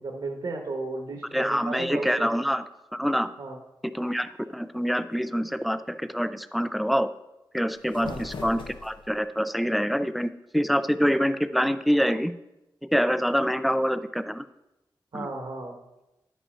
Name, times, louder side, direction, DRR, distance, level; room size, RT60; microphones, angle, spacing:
voice 1, 0.0-2.3 3.4-3.6 7.9-8.2 15.1-15.7, right 3 dB, 60° right, 1 dB, 1.3 m, -34 dB
voice 2, 1.3-2.6 2.9-3.3 3.8-7.1 7.5-12.3 12.9-14.5 15.1-15.3, equal, ahead, 12 dB, 0.4 m, -26 dB
sound 1, 7.7-9.3, left 3 dB, 90° left, 1.1 m, -40 dB
11.0 x 5.5 x 4.3 m, 0.96 s
wide cardioid pair, 85°, 8 cm